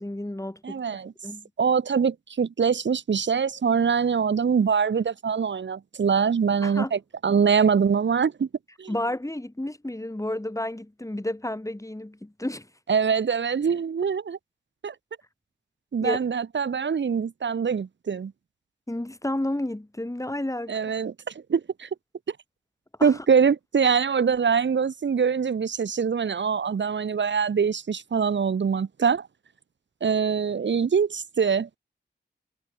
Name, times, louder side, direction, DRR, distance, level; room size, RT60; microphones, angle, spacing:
voice 1, 0.0-1.5 6.6-6.9 8.9-12.7 16.0-16.2 18.9-20.8 23.0-23.2, left 1 dB, 15° left, 5.8 m, -31 dB
voice 2, 0.6-1.1 1.6-8.5 8.8-8.9 12.9-14.4 14.8-14.9 15.9-18.3 20.7-21.9 22.3-22.4 23.0-29.3 30.0-31.7, right 6 dB, 75° right, 1.6 m, -24 dB
cardioid pair, 50°, 19 cm